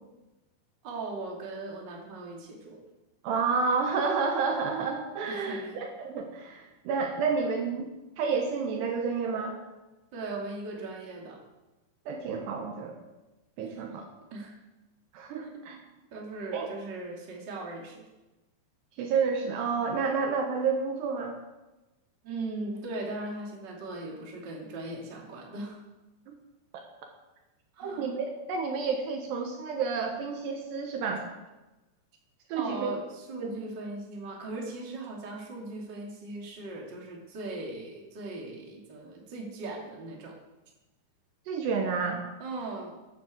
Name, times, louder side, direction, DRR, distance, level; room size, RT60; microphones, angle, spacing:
voice 1, 0.8-2.8 5.3-5.8 10.1-11.4 13.7-13.8 14.3-14.5 15.4-15.8 16.1-18.0 22.2-25.8 27.7-28.1 32.5-40.3 42.4-43.0, right 2 dB, 30° right, -2 dB, 2.5 m, -39 dB
voice 2, 3.2-7.9 8.2-9.6 12.1-12.9 13.6-14.1 15.1-15.8 16.5-16.7 19.0-21.4 26.3-26.4 26.7-26.8 27.8-31.2 32.5-32.9 33.4-33.5 41.5-42.2, right 5 dB, 70° right, 3 dB, 3.1 m, -30 dB
11.0 x 9.4 x 7.8 m, 1.1 s
omnidirectional pair, 5.3 m